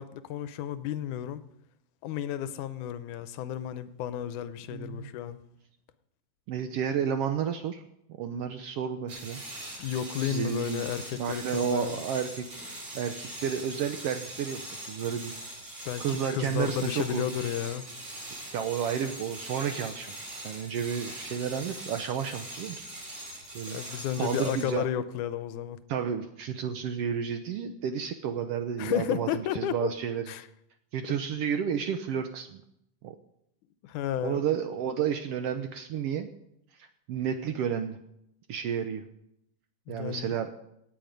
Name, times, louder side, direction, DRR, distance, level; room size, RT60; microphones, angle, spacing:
voice 1, 0.0-1.4 2.0-5.4 9.8-12.0 15.9-17.9 23.7-25.8 28.8-29.9 30.3-30.5 31.1-31.2 33.8-34.4 39.9-40.4, left 10 dB, 90° left, 13 dB, 2.2 m, -32 dB
voice 2, 4.7-5.1 6.5-7.8 8.2-9.4 10.2-10.8 11.2-15.3 16.0-17.3 18.5-22.9 23.5-24.8 25.9-30.3 30.9-32.6 33.0-33.1 34.2-36.3 37.1-38.0 38.5-39.0 39.9-40.5, right 8 dB, 85° right, 8 dB, 1.3 m, -31 dB
sound 1, 9.1-24.8, right 1 dB, 70° right, 5.5 m, -42 dB
17.5 x 8.9 x 5.2 m, 0.78 s
omnidirectional pair, 3.6 m